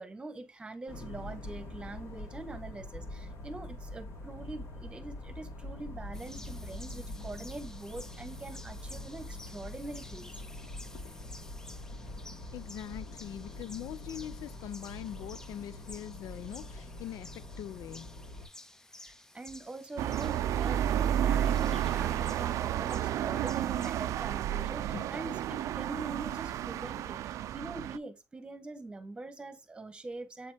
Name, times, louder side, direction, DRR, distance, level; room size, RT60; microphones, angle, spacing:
voice 1, 0.0-10.3 19.0-30.5, right 2 dB, 20° right, 1.3 m, -44 dB
sound 1, 0.9-18.5, left 1 dB, 65° left, 3.9 m, -44 dB
sound 2, 6.1-24.1, left 1 dB, 10° left, 0.6 m, -53 dB
voice 2, 12.5-18.1 24.9-25.1, left 11 dB, 80° left, 0.4 m, -42 dB
sound 3, 20.0-28.0, right 11 dB, 75° right, 0.4 m, -31 dB
8.2 x 4.2 x 3.4 m
cardioid pair, 130°, 5 cm